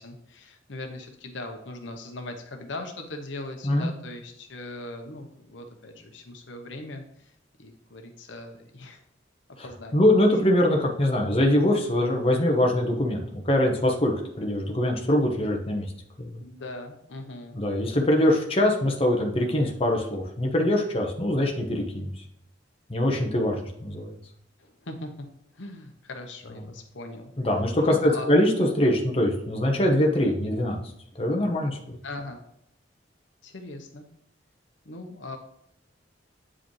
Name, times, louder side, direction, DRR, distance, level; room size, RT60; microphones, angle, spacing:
voice 1, 0.0-7.3 7.6-9.0 9.6-10.0 16.4-17.6 24.6-25.3 25.5-27.3 27.8-28.3 32.0-32.4 33.4-34.0 34.8-35.4, left 2 dB, 75° left, 4 dB, 0.9 m, -39 dB
voice 2, 9.9-15.9 16.2-16.4 17.6-22.1 22.9-24.2 27.4-30.8 31.2-32.0, left 1 dB, 30° left, 0 dB, 1.1 m, -23 dB
8.7 x 4.9 x 3.2 m, 0.74 s
head